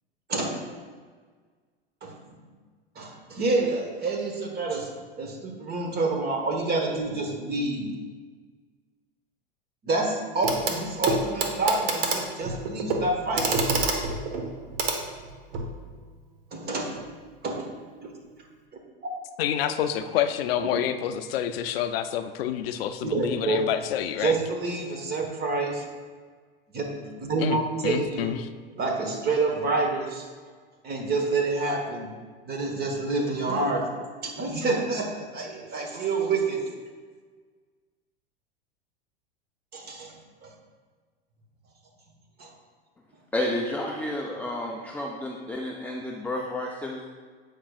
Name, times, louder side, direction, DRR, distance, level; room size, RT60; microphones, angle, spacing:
voice 1, 2.9-4.9 5.2-7.9 9.8-13.7 16.5-16.9 17.4-17.7 19.0-19.1 20.6-20.7 23.0-23.6 24.2-25.8 26.7-28.3 28.8-30.3 30.8-32.1 32.5-33.9 34.2-36.6 39.7-40.1 40.4-40.5 42.4-42.5, right 3 dB, 30° right, 2 dB, 1.3 m, -28 dB
Clock, 10.4-10.8 11.0-15.7 17.0-17.1, right 3 dB, 75° right, 1.1 m, -28 dB
voice 2, 19.4-24.3 27.4-27.6 27.8-28.5, left 10 dB, 75° left, 10 dB, 0.5 m, -28 dB
voice 3, 43.3-47.1, left 1 dB, 5° left, -1 dB, 0.4 m, -31 dB
8.5 x 5.2 x 2.4 m, 1.5 s
hypercardioid pair, 100°, 30 cm